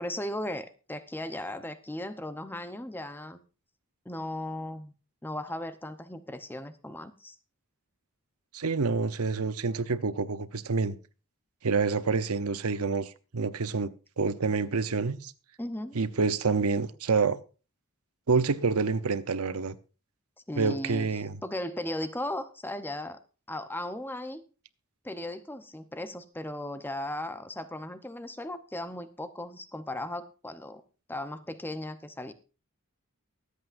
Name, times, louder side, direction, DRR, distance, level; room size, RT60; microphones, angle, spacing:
voice 1, 0.0-3.4 4.0-4.9 5.2-7.4 15.6-15.9 20.5-21.1 21.4-23.2 23.5-24.4 25.0-30.8 31.1-32.3, left 1 dB, 10° left, 0.8 m, -36 dB
voice 2, 8.5-11.0 11.6-13.9 14.2-15.3 15.9-17.4 18.3-19.8 20.6-21.4, right 4 dB, 85° right, 0.8 m, -27 dB
23.5 x 8.3 x 2.6 m
head